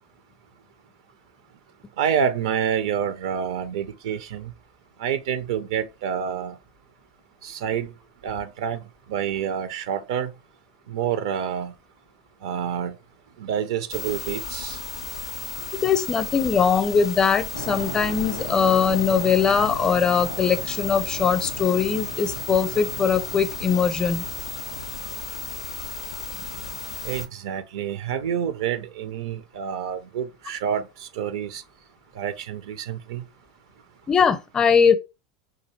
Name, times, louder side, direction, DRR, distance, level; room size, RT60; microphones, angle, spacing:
voice 1, 2.0-4.5 5.0-6.6 7.4-7.9 8.2-8.8 9.1-10.3 10.9-11.7 12.4-12.9 13.4-14.8 27.0-31.6 32.2-33.2, right 8 dB, 70° right, 0.4 m, -28 dB
sound 1, 13.9-27.3, left 5 dB, 90° left, 0.4 m, -34 dB
voice 2, 15.8-24.3 34.1-35.0, left 6 dB, 25° left, 0.5 m, -21 dB
sound 2, 17.5-26.6, right 2 dB, 90° right, 0.9 m, -38 dB
3.8 x 2.6 x 2.9 m
hypercardioid pair, 85°, 3 cm